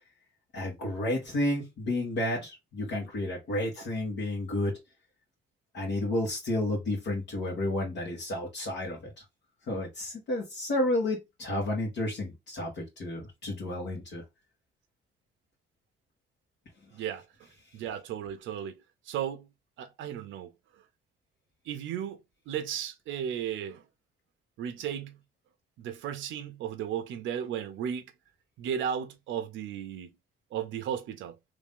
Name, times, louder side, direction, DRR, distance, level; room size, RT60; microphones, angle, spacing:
voice 1, 0.5-4.7 5.7-9.2 9.7-14.2, left 1 dB, 60° left, 1.7 m, -31 dB
voice 2, 16.9-17.2 17.7-18.8 19.0-19.5 19.8-20.5 21.7-22.2 22.5-23.8 24.6-25.2 25.8-28.1 28.6-30.1 30.5-31.4, right 9 dB, 70° right, 0.6 m, -34 dB
3.2 x 2.7 x 3.6 m
cardioid pair, 160°, 20 cm